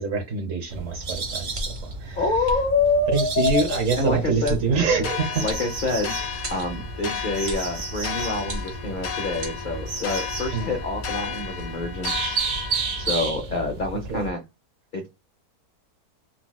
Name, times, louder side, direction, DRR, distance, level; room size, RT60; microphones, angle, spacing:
voice 1, 0.0-2.3 3.1-5.4 7.0-7.2 10.5-10.7 13.7-13.8 14.1-14.3, right 5 dB, 60° right, 1.1 m, -26 dB
sound 1, 0.7-14.3, right 3 dB, 75° right, 1.3 m, -33 dB
sound 2, 1.5-1.9 2.4-2.6 3.4-3.6 4.4-4.6 5.5-6.1 6.4-6.7 7.5-7.7 8.4-8.9 9.4-9.6, right 1 dB, 40° right, 0.7 m, -33 dB
voice 2, 2.1-4.6 5.4-6.1 6.5-12.4 13.0-14.4 14.9-15.1, left 3 dB, 65° left, 0.5 m, -26 dB
sound 3, 5.0-13.2, left 7 dB, 85° left, 1.3 m, -34 dB
4.0 x 2.2 x 2.2 m
omnidirectional pair, 1.7 m